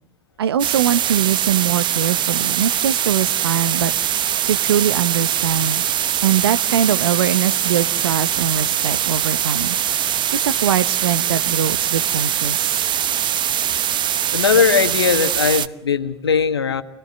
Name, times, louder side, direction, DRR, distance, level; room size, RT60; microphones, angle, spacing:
voice 1, 0.4-3.9 4.4-5.8 6.2-9.8 10.3-12.7, right 9 dB, 75° right, 16 dB, 1.0 m, -22 dB
sound 1, 0.6-15.7, right 10 dB, 35° right, 1.0 m, -22 dB
voice 2, 14.3-16.8, left 6 dB, 80° left, 9 dB, 1.7 m, -19 dB
28.5 x 20.0 x 8.0 m, 0.70 s
figure-of-eight pair, 75°, 13 cm